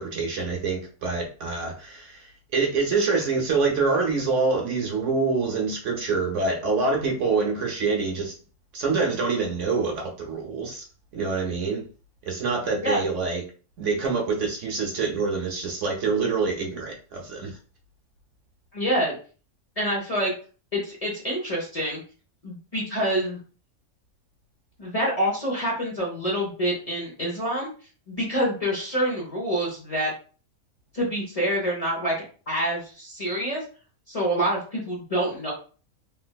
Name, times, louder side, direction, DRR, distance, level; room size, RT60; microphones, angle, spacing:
voice 1, 0.0-8.3 8.7-10.8 11.1-11.8 12.3-13.4 13.8-17.6, right 4 dB, 65° right, 1 dB, 0.9 m, -26 dB
voice 2, 18.7-19.1 19.8-20.3 20.7-22.0 22.4-23.4 24.8-27.7 28.1-30.1 30.9-32.1 32.5-33.6 34.1-35.5, equal, 30° left, -3 dB, 0.8 m, -26 dB
3.2 x 3.0 x 2.2 m, 0.38 s
omnidirectional pair, 1.5 m